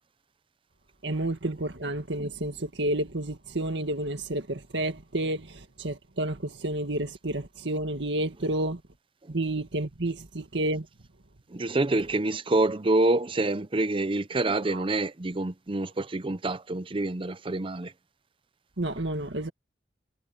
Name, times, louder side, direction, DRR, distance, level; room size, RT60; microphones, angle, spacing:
voice 1, 1.0-8.8 9.3-10.9 14.7-14.8 18.8-19.5, right 1 dB, 85° right, 1.9 m, -30 dB
voice 2, 11.5-17.9, right 2 dB, 30° right, 0.7 m, -27 dB
head